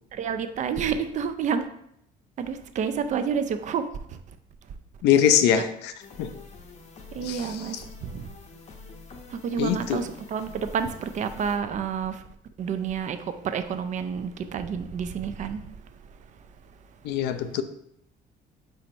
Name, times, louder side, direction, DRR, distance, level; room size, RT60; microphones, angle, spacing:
voice 1, 0.1-1.7 2.4-4.4 4.7-4.8 5.5-5.6 7.1-8.3 9.3-12.2 12.6-15.8 16.1-16.4, right 7 dB, 45° right, 0.4 m, -30 dB
voice 2, 5.0-5.9 6.2-6.3 7.2-7.8 9.6-10.0 17.0-17.6, left 9 dB, 85° left, 0.4 m, -23 dB
sound 1, 6.0-11.6, left 3 dB, 45° left, 0.7 m, -46 dB
4.4 x 4.2 x 2.6 m
cardioid pair, 110°, 17 cm